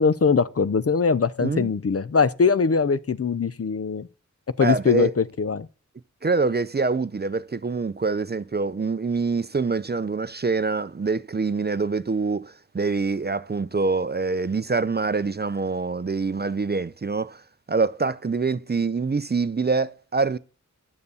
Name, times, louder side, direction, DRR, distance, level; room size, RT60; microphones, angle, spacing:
voice 1, 0.0-4.1 4.6-5.7, left 5 dB, 45° left, 0.5 m, -21 dB
voice 2, 4.6-5.1 6.2-17.4 17.7-20.4, right 4 dB, 30° right, 0.4 m, -25 dB
9.4 x 6.7 x 6.9 m
wide cardioid pair, 45°, 32 cm